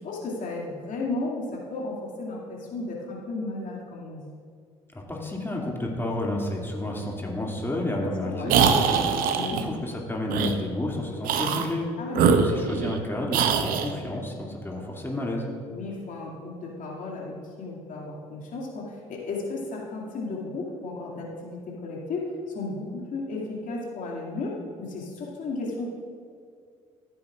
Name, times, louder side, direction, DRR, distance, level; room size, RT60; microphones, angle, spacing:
voice 1, 0.0-4.3 8.0-8.6 9.3-9.6 12.0-12.4 15.7-25.9, left 3 dB, 50° left, -3 dB, 2.4 m, -34 dB
voice 2, 4.9-9.1 9.4-11.9 12.2-15.5, left 1 dB, 15° left, -2 dB, 2.5 m, -31 dB
sound 1, 8.5-9.6 10.3-10.5 11.2-11.7 12.1-13.0 13.3-13.9, right 6 dB, 60° right, 0.8 m, -22 dB
14.5 x 8.7 x 2.5 m, 2.2 s
hypercardioid pair, 55°, 16 cm